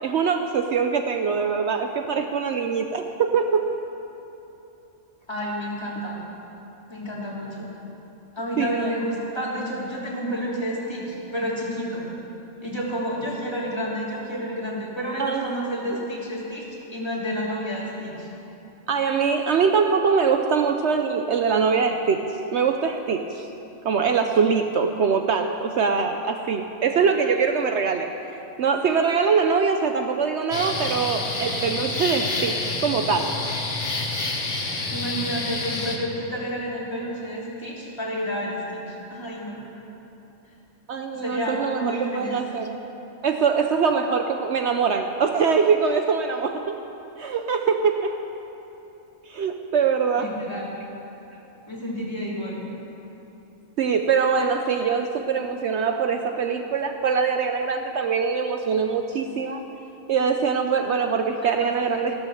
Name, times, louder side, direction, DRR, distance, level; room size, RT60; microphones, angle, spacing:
voice 1, 0.0-3.7 8.6-8.9 15.2-15.6 18.9-23.5 23.8-28.1 28.6-33.3 40.9-42.7 43.2-46.8 47.2-48.1 49.3-50.3 53.8-59.6 60.1-62.1, right 5 dB, 65° right, 5 dB, 0.9 m, -23 dB
voice 2, 5.3-6.2 6.9-7.7 8.3-12.1 12.6-18.3 34.9-39.6 41.1-42.4 50.2-50.7 51.7-52.6 61.4-62.0, equal, 20° left, -6 dB, 3.3 m, -30 dB
sound 1, 30.5-36.0, left 3 dB, 65° left, 2.0 m, -28 dB
15.5 x 12.5 x 6.4 m, 3.0 s
omnidirectional pair, 1.3 m